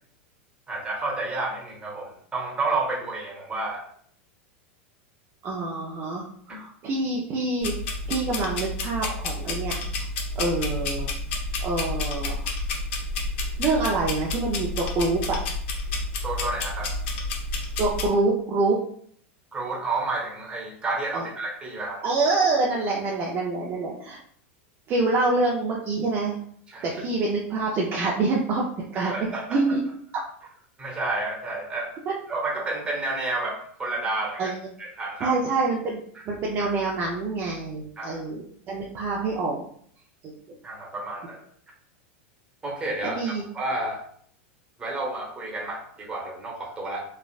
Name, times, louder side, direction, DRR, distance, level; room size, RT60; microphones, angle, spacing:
voice 1, 0.7-3.8 6.5-6.6 16.2-17.0 19.5-22.1 26.7-26.9 28.9-29.7 30.8-32.0 32.3-35.4 36.1-36.2 38.0-38.2 40.6-41.4 42.6-44.0 44.8-47.0, right 2 dB, 15° right, -2 dB, 1.0 m, -30 dB
voice 2, 5.4-7.7 8.1-9.8 10.4-11.1 11.6-12.4 13.6-15.4 17.8-18.8 21.1-21.2 22.0-24.2 24.9-26.4 26.8-28.6 28.9-29.1 29.5-29.8 32.1-32.2 34.4-34.5 35.2-36.0 36.3-39.7 40.2-40.3 43.0-43.4, right 3 dB, 35° right, -3 dB, 0.5 m, -26 dB
sound 1, 7.6-18.1, left 2 dB, 70° left, 0.7 m, -30 dB
3.2 x 2.4 x 2.4 m, 0.62 s
hypercardioid pair, 120°, 7 cm